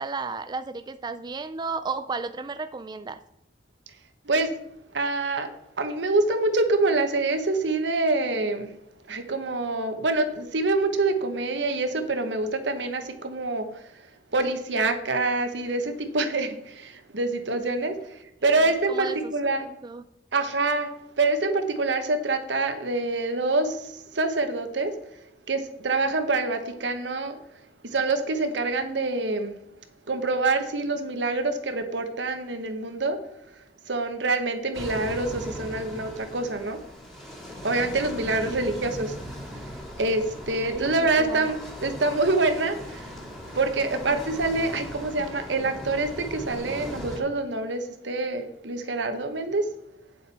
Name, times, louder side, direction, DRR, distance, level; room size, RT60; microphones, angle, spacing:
voice 1, 0.0-3.2 18.5-19.3 19.6-20.0 38.5-39.0 40.7-41.5, right 4 dB, 25° right, 10 dB, 0.4 m, -34 dB
voice 2, 4.9-5.5 5.8-8.7 9.1-13.7 14.3-19.7 20.3-20.9 21.2-24.9 25.5-27.4 27.8-29.6 30.1-33.2 33.9-36.8 37.6-39.1 40.0-43.2 43.5-49.7, right 3 dB, 80° right, 8 dB, 1.1 m, -26 dB
sound 1, 34.7-47.2, equal, ahead, 2.0 m, -39 dB
8.7 x 7.4 x 4.2 m, 0.78 s
head